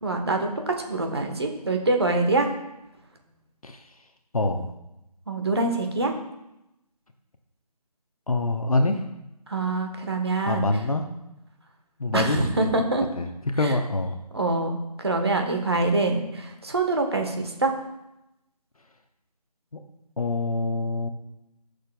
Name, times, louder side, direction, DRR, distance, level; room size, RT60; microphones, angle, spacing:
voice 1, 0.0-2.5 5.3-6.1 9.5-10.7 12.1-13.0 13.6-13.7 14.3-17.7, right 2 dB, 40° right, 4 dB, 1.2 m, -25 dB
voice 2, 3.6-3.9 4.3-4.7 8.3-9.0 10.5-11.0 12.0-12.4 13.1-13.3 13.5-14.1 20.2-21.1, left 2 dB, 60° left, 5 dB, 0.8 m, -25 dB
15.0 x 6.6 x 2.3 m, 0.91 s
figure-of-eight pair, 175°, 21 cm